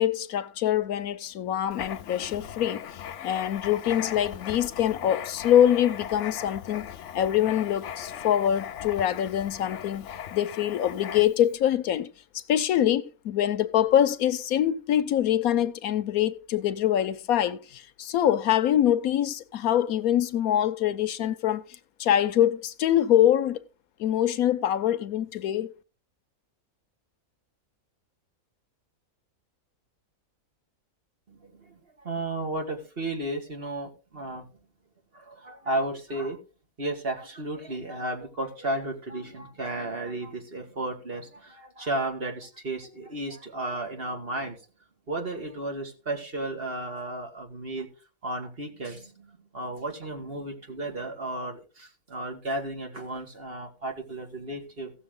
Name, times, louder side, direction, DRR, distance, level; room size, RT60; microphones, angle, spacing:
voice 1, 0.0-2.8 3.2-12.1 12.3-21.6 22.0-23.6 24.0-25.7, left 11 dB, 80° left, 1.2 m, -24 dB
Writing, 1.7-11.5, left 9 dB, 60° left, 0.9 m, -39 dB
voice 2, 31.3-34.5 35.1-36.4 36.8-44.6 45.1-47.9 48.2-54.9, right 2 dB, 40° right, 2.3 m, -33 dB
16.0 x 6.9 x 3.8 m
omnidirectional pair, 1.5 m